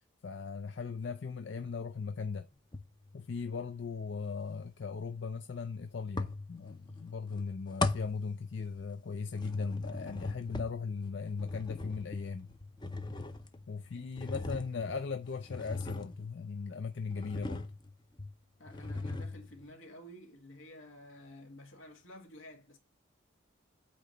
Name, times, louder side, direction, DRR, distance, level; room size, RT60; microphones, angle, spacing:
voice 1, 0.2-2.5 3.1-12.6 13.7-17.7, left 5 dB, 65° left, 0.5 m, -38 dB
sound 1, 2.7-3.2 6.2-7.0 7.3-9.0 9.3-16.6 17.1-17.9 18.2-18.3 18.7-19.6, left 2 dB, 20° left, 0.6 m, -39 dB
voice 2, 18.6-22.8, left 1 dB, 85° left, 2.0 m, -51 dB
8.6 x 2.9 x 6.4 m
head